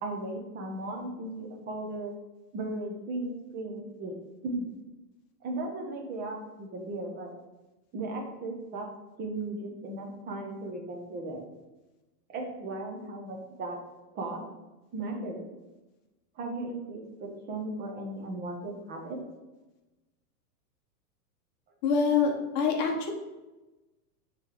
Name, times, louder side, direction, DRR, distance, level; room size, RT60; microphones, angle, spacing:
voice 1, 0.0-2.1 2.5-4.2 4.4-4.7 5.4-7.3 7.9-8.9 9.2-11.4 12.3-13.8 14.1-14.4 14.9-15.4 16.3-19.2, right 2 dB, 20° right, 1 dB, 0.9 m, -36 dB
voice 2, 21.8-23.1, left 5 dB, 30° left, 2 dB, 1.0 m, -25 dB
6.3 x 3.4 x 4.9 m, 1.1 s
supercardioid pair, 150°, 48 cm